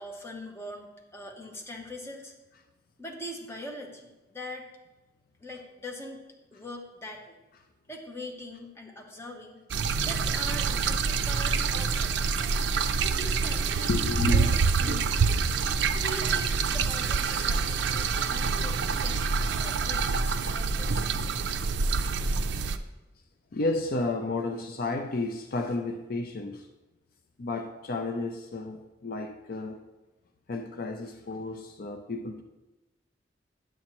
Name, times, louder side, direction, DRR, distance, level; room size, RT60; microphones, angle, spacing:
voice 1, 0.0-2.3 3.0-4.7 5.4-6.2 6.5-7.4 7.9-9.6 10.0-12.6 13.0-15.3 15.9-19.2 19.5-21.1, left 1 dB, 15° left, 1.0 m, -42 dB
sound 1, 9.7-22.8, right 5 dB, 70° right, 0.4 m, -26 dB
voice 2, 13.9-14.6 18.5-18.8 21.4-21.6 22.3-22.6 23.5-26.7 27.4-29.8 30.5-32.4, left 2 dB, 55° left, 0.5 m, -32 dB
9.5 x 7.7 x 3.0 m
head